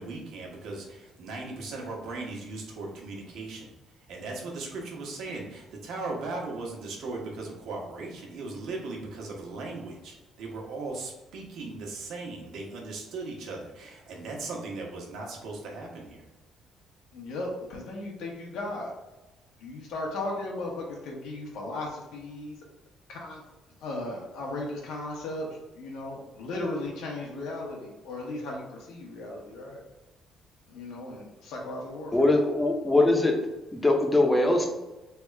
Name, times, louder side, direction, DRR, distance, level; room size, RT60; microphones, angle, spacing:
voice 1, 0.0-3.7 4.1-16.3, right 3 dB, 70° right, -1 dB, 1.1 m, -38 dB
voice 2, 17.1-18.9 19.6-22.6 23.1-23.4 23.8-29.8 30.7-32.3, left 2 dB, 80° left, -1 dB, 1.2 m, -36 dB
voice 3, 32.1-33.4 33.7-34.7, left 2 dB, 10° left, 2 dB, 0.6 m, -22 dB
3.5 x 2.4 x 4.4 m, 1.1 s
cardioid pair, 155°, 0 cm